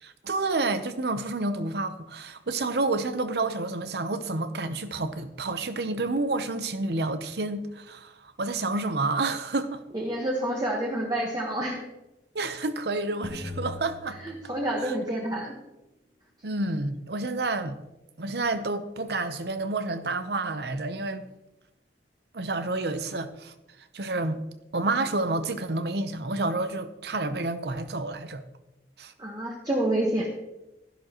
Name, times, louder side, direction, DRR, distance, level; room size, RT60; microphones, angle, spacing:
voice 1, 0.0-9.8 12.3-14.2 14.8-15.0 16.4-17.8 18.2-21.2 22.3-23.5 23.9-24.4 24.7-28.4 29.0-29.1, right 2 dB, 65° right, 0.8 m, -29 dB
voice 2, 9.9-11.8 14.2-15.5 29.2-30.3, right 1 dB, 25° right, 1.3 m, -28 dB
sound 1, 13.2-15.0, left 1 dB, ahead, 1.3 m, -39 dB
12.5 x 11.0 x 3.0 m
head